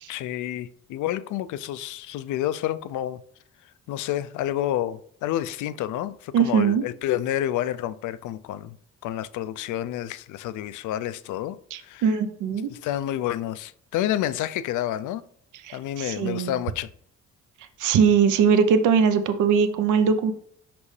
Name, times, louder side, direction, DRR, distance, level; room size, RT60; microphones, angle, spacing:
voice 1, 0.1-3.2 3.9-8.8 9.0-11.6 11.8-12.2 12.7-15.2 15.7-16.9, left 12 dB, 80° left, 0.5 m, -29 dB
voice 2, 6.3-6.8 11.7-12.7 15.6-16.5 17.8-20.3, right 6 dB, 80° right, 0.7 m, -21 dB
5.9 x 5.3 x 3.2 m
cardioid pair, 90°, 30 cm